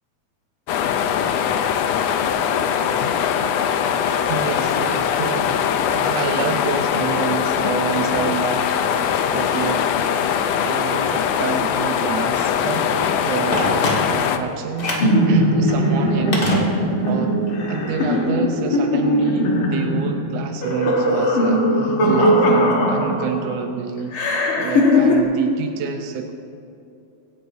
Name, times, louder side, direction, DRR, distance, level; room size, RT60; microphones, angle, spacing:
sound 1, 0.7-14.4, left 8 dB, 75° left, 1.6 m, -21 dB
voice 1, 4.3-9.9 10.6-13.7 14.1-15.0 15.3-17.4 17.7-24.2 24.6-26.3, right 6 dB, 75° right, 5 dB, 1.6 m, -28 dB
Telephone, 13.5-14.4 14.8-15.2 16.3-17.2 17.5-17.6, left 1 dB, 40° left, 1.8 m, -24 dB
sound 2, 15.0-23.5 24.1-25.2, equal, 55° left, 1.9 m, -19 dB
24.5 x 9.5 x 2.7 m, 2.5 s
omnidirectional pair, 3.3 m